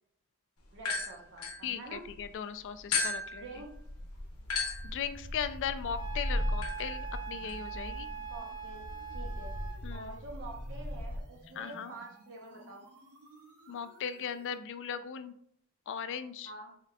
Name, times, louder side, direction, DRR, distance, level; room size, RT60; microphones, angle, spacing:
voice 1, 0.7-2.0 3.4-3.7 8.3-9.6 9.9-12.9 16.4-16.8, right 2 dB, 55° right, 0 dB, 0.7 m, -47 dB
sound 1, 0.8-2.3 2.9-11.2, left 2 dB, 80° left, 0.9 m, -37 dB
voice 2, 1.6-3.4 4.8-8.1 9.8-10.2 11.6-11.9 13.7-15.3 15.9-16.5, left 8 dB, 55° left, 11 dB, 0.3 m, -38 dB
sound 2, 2.5-14.6, equal, 85° right, 1.5 m, -51 dB
Wind instrument woodwind instrument, 5.9-9.8, right 7 dB, 20° right, 0.6 m, -43 dB
4.7 x 3.5 x 2.2 m, 0.69 s
head